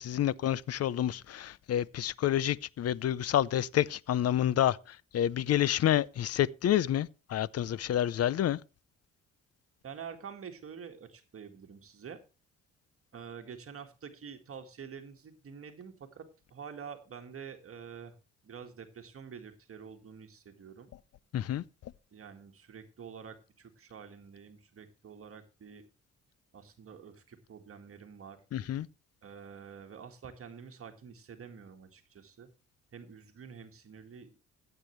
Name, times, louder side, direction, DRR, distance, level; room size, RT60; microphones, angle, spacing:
voice 1, 0.0-8.6 21.3-21.6 28.5-28.9, left 11 dB, 55° left, 0.6 m, -29 dB
voice 2, 9.8-12.2 13.1-18.1 18.4-20.9 22.1-25.8 26.5-28.4 29.2-32.5 32.9-34.3, right 7 dB, 45° right, 1.8 m, -47 dB
15.5 x 8.3 x 3.2 m
cardioid pair, 90°, 30 cm